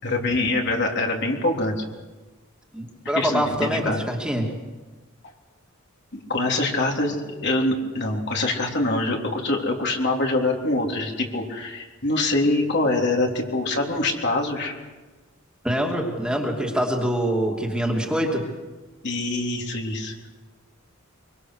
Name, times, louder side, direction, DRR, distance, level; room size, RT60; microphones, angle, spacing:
voice 1, 0.0-1.8 3.2-4.0 6.1-14.7 19.0-20.1, left 2 dB, 55° left, 0 dB, 3.5 m, -24 dB
voice 2, 2.7-4.5 15.6-18.4, equal, 5° right, 0 dB, 2.8 m, -25 dB
24.5 x 24.5 x 6.5 m, 1.2 s
head